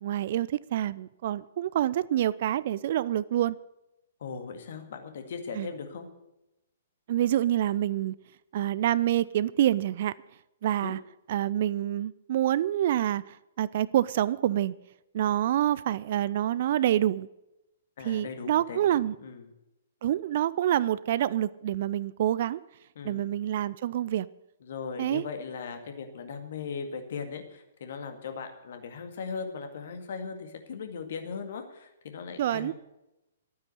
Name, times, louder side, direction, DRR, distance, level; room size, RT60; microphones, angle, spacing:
voice 1, 0.0-3.6 5.5-5.7 7.1-8.2 8.5-10.1 10.6-11.0 11.3-14.7 15.1-17.3 18.0-19.1 20.0-22.6 23.0-24.3 25.0-25.2 32.4-32.7, right 12 dB, 45° right, 0.4 m, -27 dB
voice 2, 4.2-6.1 10.8-10.9 18.0-19.5 23.0-23.3 24.6-32.7, left 5 dB, 50° left, 2.0 m, -38 dB
12.5 x 9.5 x 8.1 m
figure-of-eight pair, 115°, 0 cm